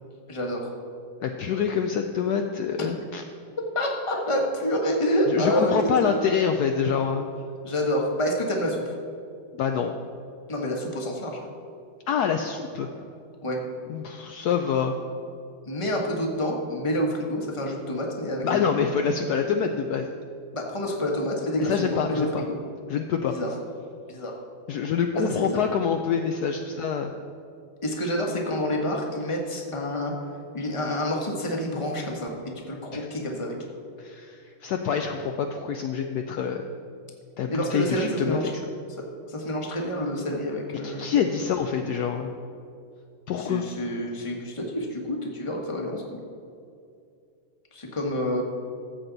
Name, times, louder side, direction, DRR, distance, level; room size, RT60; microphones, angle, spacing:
voice 1, 0.3-0.7 3.6-6.3 7.6-8.9 10.5-11.5 13.4-13.6 15.6-18.6 20.5-22.5 23.3-23.5 24.1-24.3 25.1-25.6 27.8-30.1 30.5-32.3 32.7-33.6 37.5-38.5 39.3-41.1 43.4-46.2 47.7-48.4, equal, 20° left, 0 dB, 1.2 m, -28 dB
voice 2, 1.2-3.2 5.3-7.3 9.5-9.9 12.1-12.9 13.9-15.0 18.4-20.1 21.6-22.4 22.9-23.3 24.7-27.1 32.9-33.1 34.0-36.6 37.4-38.6 40.8-42.3 43.3-43.6, left 7 dB, 75° left, 5 dB, 0.9 m, -26 dB
14.0 x 7.7 x 4.0 m, 2.5 s
omnidirectional pair, 2.2 m